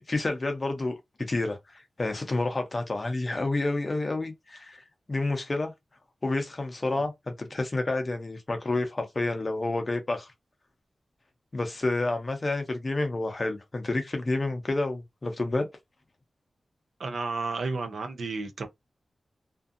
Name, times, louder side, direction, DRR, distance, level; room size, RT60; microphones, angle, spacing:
voice 1, 0.0-4.8 5.1-5.7 6.2-10.3 11.5-15.7, left 2 dB, 30° left, 0.6 m, -29 dB
voice 2, 17.0-18.7, right 3 dB, 75° right, 0.5 m, -32 dB
2.5 x 2.5 x 2.4 m
wide cardioid pair, 175°, 0 cm